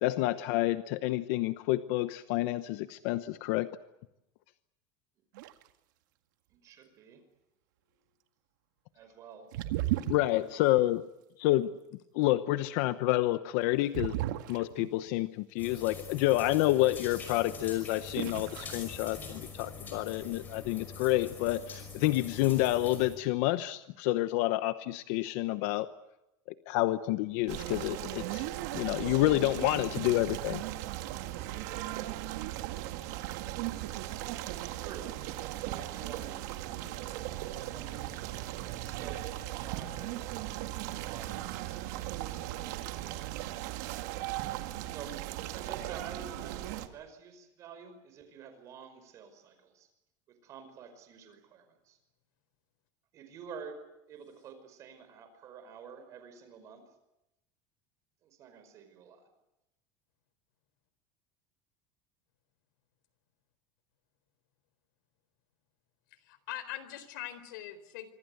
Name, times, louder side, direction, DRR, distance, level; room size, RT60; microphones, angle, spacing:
voice 1, 0.0-3.7 10.1-11.0 11.4-11.8 12.1-14.1 14.5-25.9 26.7-28.4 28.7-30.6, left 16 dB, 55° left, 12 dB, 1.0 m, -29 dB
sound 1, 5.3-5.7 9.5-10.5 13.9-15.1 17.7-17.8 18.2-18.8 19.0-19.6, right 15 dB, 85° right, 2.0 m, -34 dB
voice 2, 6.5-7.2 8.9-9.5 34.7-35.2 35.6-37.1 37.6-38.1 38.8-39.2 39.6-40.7 41.0-41.8 44.8-45.2 45.5-49.9 50.3-52.0 53.1-53.8 54.1-56.8 58.2-59.3, right 6 dB, 30° right, 8 dB, 5.3 m, -49 dB
sound 2, 15.6-23.2, left 4 dB, 20° left, 5.6 m, -44 dB
sound 3, 27.5-46.9, right 14 dB, 65° right, 2.3 m, -38 dB
voice 3, 66.1-68.1, left 13 dB, 90° left, 14 dB, 4.2 m, -42 dB
26.0 x 25.0 x 8.0 m, 0.90 s
cardioid pair, 180°, 10 cm